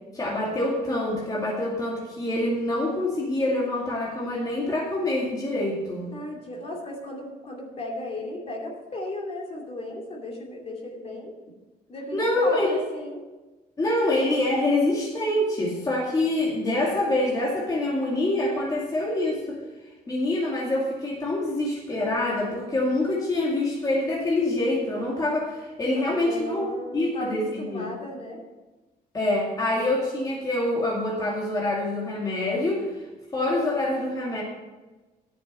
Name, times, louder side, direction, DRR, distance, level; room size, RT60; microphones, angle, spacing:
voice 1, 0.1-6.1 12.1-12.7 13.8-19.6 20.1-26.7 26.9-27.9 29.1-33.1 33.3-34.4, left 1 dB, 25° left, -4 dB, 2.3 m, -26 dB
voice 2, 6.1-11.4 11.9-13.2 26.2-28.4, left 1 dB, 40° left, 0 dB, 2.7 m, -35 dB
11.0 x 6.7 x 6.7 m, 1.2 s
cardioid pair, 120°, 16 cm